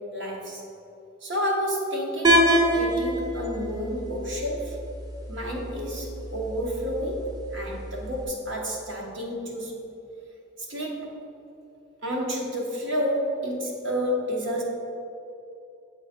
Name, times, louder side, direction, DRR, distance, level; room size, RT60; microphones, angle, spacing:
voice 1, 0.1-0.6 1.2-4.8 5.3-9.7 10.7-11.1 12.0-14.6, equal, 65° right, -1 dB, 1.2 m, -30 dB
sound 1, 2.2-8.2, equal, 20° right, 0.5 m, -27 dB
7.8 x 3.9 x 4.3 m, 2.7 s
head